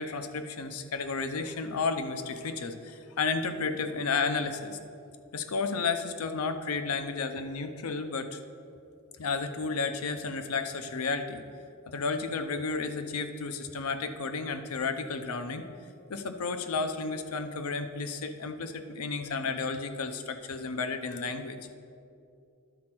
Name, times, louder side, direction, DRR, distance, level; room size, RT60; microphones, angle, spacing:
voice 1, 0.0-4.8 5.3-8.4 9.2-11.4 11.9-15.7 16.1-21.6, left 4 dB, 90° left, 8 dB, 0.6 m, -32 dB
11.5 x 4.3 x 6.0 m, 2.5 s
head